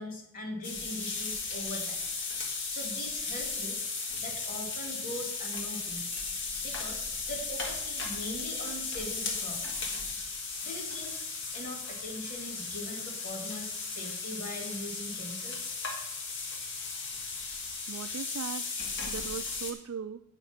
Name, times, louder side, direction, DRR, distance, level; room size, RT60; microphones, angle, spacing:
voice 1, 0.0-2.0 2.7-9.8 10.6-11.2 11.5-15.7, left 1 dB, 40° left, 1 dB, 2.4 m, -41 dB
sound 1, 0.6-19.7, left 4 dB, 55° left, 1.6 m, -36 dB
voice 2, 17.9-18.7 19.1-20.2, right 6 dB, 90° right, 8 dB, 0.4 m, -38 dB
9.1 x 4.9 x 7.0 m, 0.72 s
head